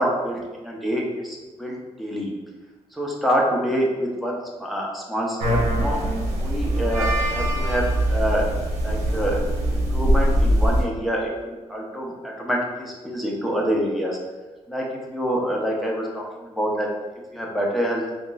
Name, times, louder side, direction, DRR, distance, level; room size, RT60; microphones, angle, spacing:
voice 1, 0.0-2.3 2.9-6.0 6.4-8.5 8.8-9.4 9.7-14.2 14.7-14.8 15.1-16.9 17.3-18.0, equal, ahead, -3 dB, 0.7 m, -26 dB
sound 1, 5.4-10.8, right 1 dB, 80° right, 0.8 m, -22 dB
5.1 x 2.1 x 2.3 m, 1.2 s
cardioid pair, 125°, 11 cm